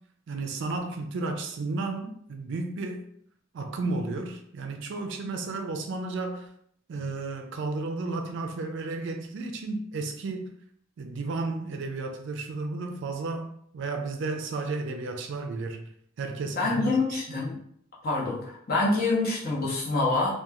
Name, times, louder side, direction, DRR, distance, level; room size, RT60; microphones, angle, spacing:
voice 1, 0.3-3.0 3.5-6.5 6.9-10.5 11.0-15.8 16.2-17.2, right 3 dB, 60° right, 5 dB, 0.4 m, -33 dB
voice 2, 16.6-17.6 18.0-20.3, left 3 dB, 45° left, -6 dB, 0.9 m, -26 dB
2.8 x 2.3 x 2.3 m, 0.68 s
head